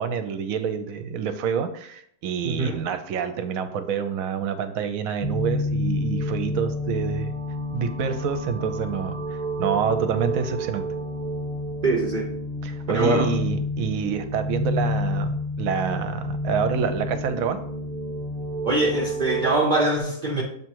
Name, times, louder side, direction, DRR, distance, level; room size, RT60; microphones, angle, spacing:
voice 1, 0.0-7.4 7.7-10.8 12.6-17.6, right 7 dB, 65° right, 9 dB, 1.0 m, -27 dB
voice 2, 2.4-2.8 11.8-12.3 12.9-13.3 18.6-20.4, right 2 dB, 45° right, -1 dB, 0.6 m, -23 dB
sound 1, 5.2-19.5, left 1 dB, 5° left, 0.7 m, -29 dB
7.4 x 3.1 x 4.5 m, 0.69 s
omnidirectional pair, 1.6 m